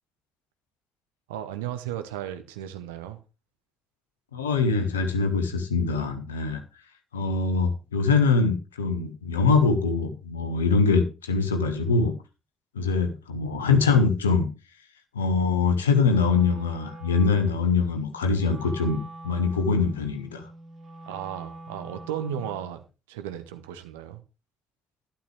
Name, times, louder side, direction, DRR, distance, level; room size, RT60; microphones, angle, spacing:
voice 1, 1.3-3.2 21.1-24.2, right 10 dB, 75° right, 1.0 m, -35 dB
voice 2, 4.3-6.6 7.1-12.1 12.7-14.5 15.1-19.0 19.2-20.5, left 4 dB, 80° left, 1.1 m, -23 dB
Wind instrument woodwind instrument, 16.0-22.8, right 2 dB, 45° right, 3.1 m, -44 dB
11.5 x 11.5 x 3.3 m
figure-of-eight pair, 40°, 0 cm